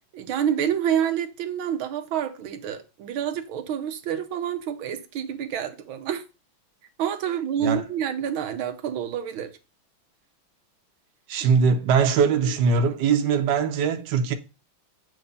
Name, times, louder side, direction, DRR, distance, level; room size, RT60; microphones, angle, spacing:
voice 1, 0.1-6.2 7.0-9.5, right 9 dB, 85° right, 1.6 m, -28 dB
voice 2, 11.3-14.3, right 5 dB, 65° right, 1.3 m, -21 dB
7.8 x 3.2 x 5.2 m
omnidirectional pair, 2.2 m